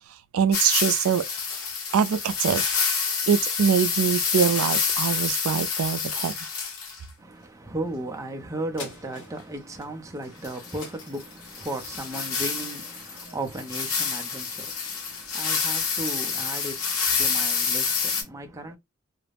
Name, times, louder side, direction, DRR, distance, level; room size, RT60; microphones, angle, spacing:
voice 1, 0.3-1.2 1.9-2.6 3.3-6.3, right 7 dB, 85° right, 0.3 m, -23 dB
sound 1, 0.5-7.0 10.4-18.2, left 5 dB, 85° left, 0.9 m, -28 dB
voice 2, 7.2-18.8, right 1 dB, 15° right, 0.4 m, -36 dB
sound 2, 8.8-13.5 14.0-14.1, left 2 dB, 65° left, 1.1 m, -46 dB
2.4 x 2.0 x 3.3 m
head